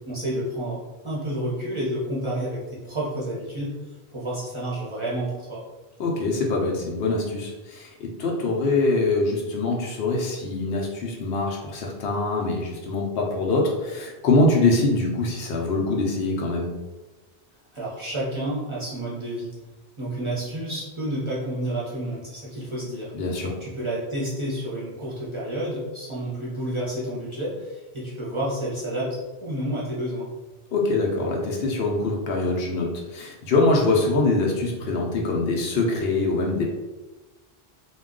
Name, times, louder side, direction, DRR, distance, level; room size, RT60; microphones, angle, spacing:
voice 1, 0.0-3.8 4.1-5.6 17.7-19.5 20.0-30.3, right 1 dB, 35° right, -7 dB, 0.6 m, -30 dB
voice 2, 6.0-16.7 23.1-23.6 30.7-36.6, left 2 dB, 70° left, -1 dB, 0.8 m, -24 dB
2.3 x 2.2 x 3.6 m, 1.1 s
omnidirectional pair, 1.1 m